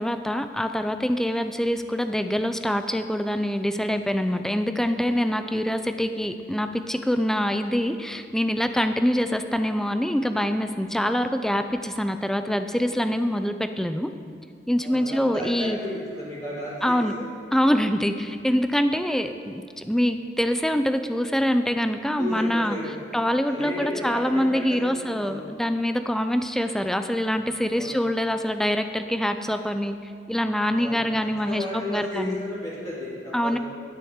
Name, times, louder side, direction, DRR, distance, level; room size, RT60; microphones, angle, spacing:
voice 1, 0.0-14.1 14.7-15.8 16.8-17.1 17.5-22.8 23.1-32.4 33.3-33.6, equal, 5° left, 9 dB, 0.3 m, -25 dB
voice 2, 14.8-17.3 22.2-22.9 23.5-24.9 25.2-25.4 27.7-27.9 30.7-33.6, left 1 dB, 20° left, -9 dB, 2.2 m, -33 dB
10.0 x 9.7 x 3.7 m, 2.4 s
head